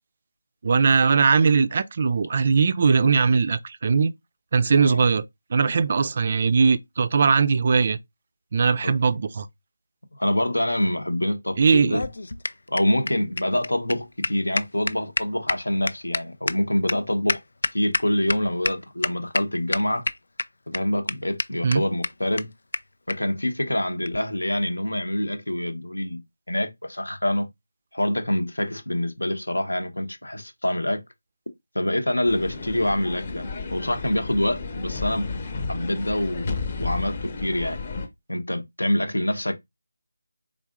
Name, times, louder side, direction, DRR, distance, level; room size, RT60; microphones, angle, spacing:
voice 1, 0.6-4.1 4.5-5.2 5.5-8.0 8.5-9.5 11.6-12.0 21.6-21.8, right 5 dB, 40° right, 0.3 m, -20 dB
voice 2, 4.7-5.1 8.8-8.9 10.1-12.1 12.7-17.4 17.7-20.1 20.7-22.5 23.1-26.2 26.5-27.5 27.9-31.0 31.7-35.3 35.7-37.8 38.3-39.6, left 1 dB, 85° left, 0.9 m, -26 dB
sound 1, 11.7-18.4 18.6-18.7 19.0-19.4 19.7-20.4 20.7-20.8 21.1-21.2 21.4-21.5 21.7-21.8 22.0-22.1 22.4-22.5 22.7-22.8 23.1-23.2 24.0-24.2, left 2 dB, 65° left, 0.3 m, -27 dB
sound 2, 32.3-38.1, left 4 dB, 35° left, 0.8 m, -32 dB
3.8 x 3.5 x 2.4 m
figure-of-eight pair, 165°, 0 cm